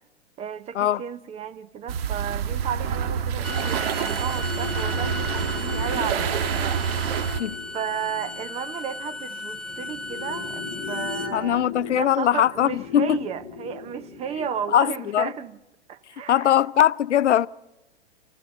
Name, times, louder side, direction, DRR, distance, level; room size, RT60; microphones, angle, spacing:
voice 1, 0.4-6.8 7.7-15.5 15.9-16.5, right 8 dB, 20° right, 0.6 m, -33 dB
sound 1, 1.9-7.4, right 8 dB, 55° right, 1.7 m, -27 dB
sound 2, 2.1-14.6, left 5 dB, 25° left, 3.8 m, -39 dB
Bowed string instrument, 3.3-11.3, left 2 dB, ahead, 1.7 m, -36 dB
voice 2, 11.3-13.2 14.4-15.3 16.3-17.5, left 11 dB, 85° left, 0.6 m, -21 dB
28.0 x 14.5 x 8.0 m
hypercardioid pair, 130°, 34 cm